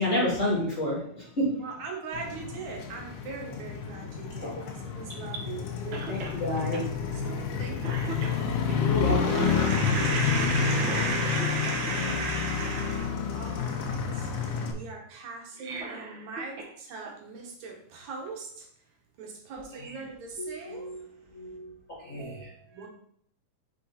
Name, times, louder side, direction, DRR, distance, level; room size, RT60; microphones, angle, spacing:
voice 1, 0.0-1.6 4.4-4.6 6.1-6.8 8.8-9.4, left 1 dB, 20° left, 2.6 m, -28 dB
voice 2, 1.5-6.6 7.1-8.6 9.0-14.3 14.7-18.7 19.2-21.1 22.7-22.9, right 3 dB, 70° right, 2.3 m, -37 dB
Motorcycle, 2.1-14.7, left 6 dB, 90° left, 2.4 m, -29 dB
Cough, 5.9-6.4 6.7-6.9 7.4-7.5 7.8-8.8 10.8-12.2 15.4-16.7 17.0-17.1 18.3-18.4, right 3 dB, 85° right, 1.0 m, -39 dB
voice 3, 20.4-21.0 21.3-22.5, right 1 dB, 65° left, 0.8 m, -41 dB
5.7 x 4.6 x 4.1 m
omnidirectional pair, 3.6 m